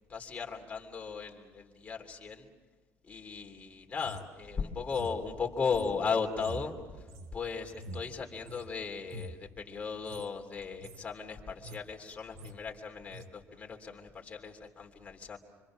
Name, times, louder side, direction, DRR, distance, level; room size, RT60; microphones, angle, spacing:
voice 1, 0.1-2.5 3.0-7.1 7.3-15.4, left 5 dB, 25° left, 2 dB, 3.0 m, -36 dB
sound 1, 3.9-8.7 9.0-9.4 9.9-10.3 10.6-11.1 11.4-11.9 12.2-12.6 13.1-13.3, right 2 dB, 60° right, 1.6 m, -46 dB
26.5 x 25.5 x 6.2 m, 1.4 s
cardioid pair, 145°, 5 cm